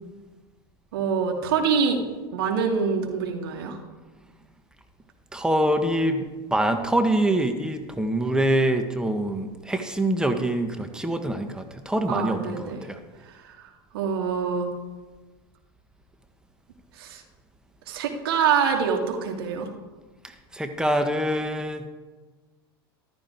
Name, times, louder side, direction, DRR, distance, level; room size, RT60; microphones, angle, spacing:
voice 1, 0.9-2.0 2.3-3.8 12.1-12.8 13.2-14.7 16.9-17.2 17.9-19.7, right 6 dB, 70° right, 3 dB, 2.6 m, -25 dB
voice 2, 5.3-13.0 20.2-21.9, right 1 dB, 5° right, 6 dB, 1.5 m, -25 dB
14.5 x 13.0 x 4.7 m, 1.3 s
hypercardioid pair, 85°, 13 cm